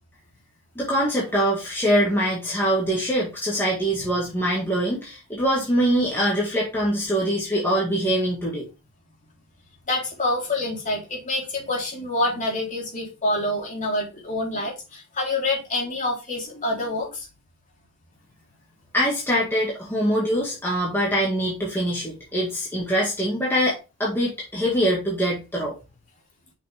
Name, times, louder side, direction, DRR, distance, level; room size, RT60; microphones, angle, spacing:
voice 1, 0.8-8.7 18.9-25.7, equal, 10° left, 1.8 m, -23 dB
voice 2, 9.9-17.3, left 2 dB, 35° left, 3.2 m, -27 dB
6.2 x 5.8 x 3.3 m
head